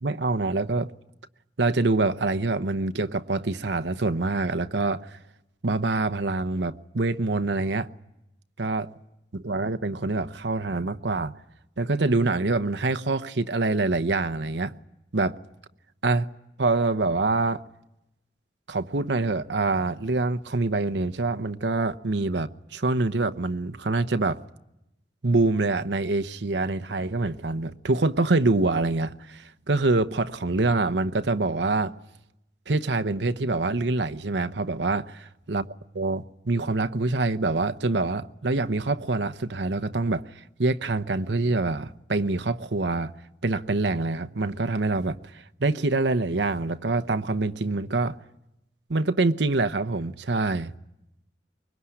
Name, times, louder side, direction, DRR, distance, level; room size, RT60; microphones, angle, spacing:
voice 1, 0.0-0.9 1.6-5.2 5.6-7.9 8.6-8.9 9.3-11.4 11.8-14.7 15.1-15.3 16.0-16.3 16.6-17.6 18.7-24.4 25.2-31.9 32.7-35.6 35.9-40.2 40.6-43.1 43.4-45.2 45.6-48.1 48.9-50.7, right 3 dB, 75° right, 0.9 m, -25 dB
24.5 x 22.0 x 10.0 m
head